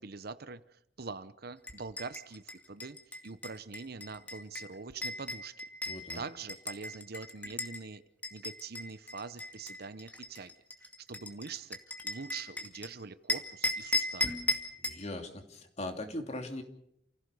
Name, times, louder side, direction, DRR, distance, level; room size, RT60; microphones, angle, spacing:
voice 1, 0.0-5.6 6.1-8.0 8.3-10.5 11.0-11.8 12.0-14.4, right 4 dB, 55° right, 0.8 m, -44 dB
sound 1, 1.6-7.8 8.2-12.9 13.3-15.0, left 1 dB, 10° left, 2.2 m, -37 dB
voice 2, 5.9-6.2 14.8-16.6, left 1 dB, 35° left, 2.9 m, -40 dB
29.5 x 16.0 x 6.8 m
head